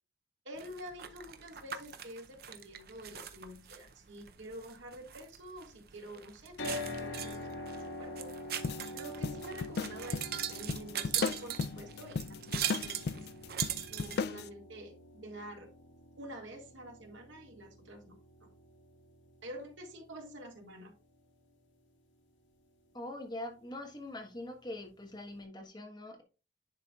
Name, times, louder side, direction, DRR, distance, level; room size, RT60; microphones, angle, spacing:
voice 1, 0.5-8.3 8.9-15.7 16.2-18.5 19.4-20.9, right 1 dB, 85° right, 1.9 m, -48 dB
sound 1, 0.6-14.2, right 10 dB, 55° right, 0.6 m, -41 dB
sound 2, 6.6-20.7, left 2 dB, 85° left, 1.6 m, -46 dB
sound 3, 8.6-14.5, left 4 dB, 55° left, 0.3 m, -36 dB
voice 2, 22.9-26.2, left 1 dB, 25° left, 1.2 m, -43 dB
10.5 x 4.3 x 2.4 m
head